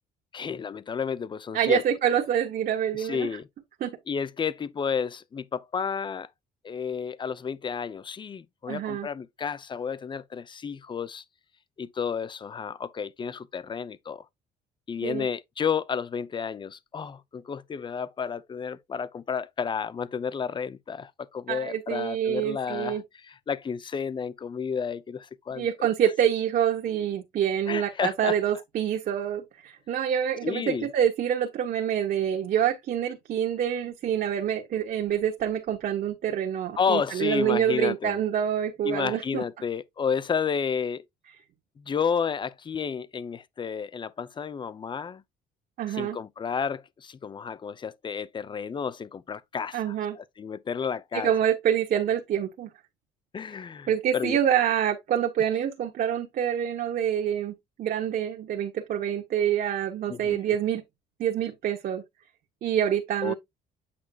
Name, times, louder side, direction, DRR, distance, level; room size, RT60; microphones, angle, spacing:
voice 1, 0.3-1.8 3.0-3.5 4.1-6.3 6.6-11.2 11.8-14.2 14.9-25.7 27.7-28.4 30.4-30.9 36.8-38.2 38.8-41.0 41.8-45.2 45.9-51.3 53.3-54.4 60.1-60.4 63.2-63.3, left 6 dB, 30° left, 0.7 m, -31 dB
voice 2, 1.5-3.3 3.8-3.9 8.7-9.1 15.0-15.3 21.5-23.0 25.5-39.4 45.8-46.2 49.7-50.2 51.1-52.7 53.9-57.5 57.8-60.8 61.2-62.0 62.6-63.3, right 9 dB, 55° right, 1.4 m, -26 dB
8.6 x 5.8 x 2.4 m
cardioid pair, 110°, 17 cm